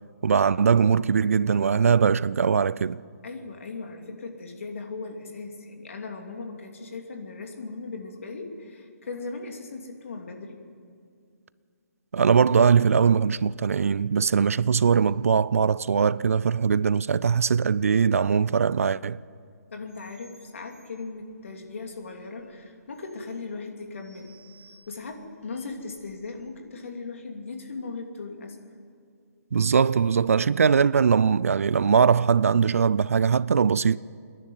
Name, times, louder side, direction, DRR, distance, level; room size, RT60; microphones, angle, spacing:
voice 1, 0.2-3.0 12.1-19.2 29.5-34.0, right 6 dB, 60° right, 0.4 m, -21 dB
voice 2, 3.2-10.6 19.7-24.4 24.9-28.6, left 3 dB, 50° left, 2.9 m, -38 dB
sound 1, 19.8-26.5, right 2 dB, 35° left, 6.3 m, -59 dB
26.5 x 11.0 x 9.5 m
hypercardioid pair, 175°, 9 cm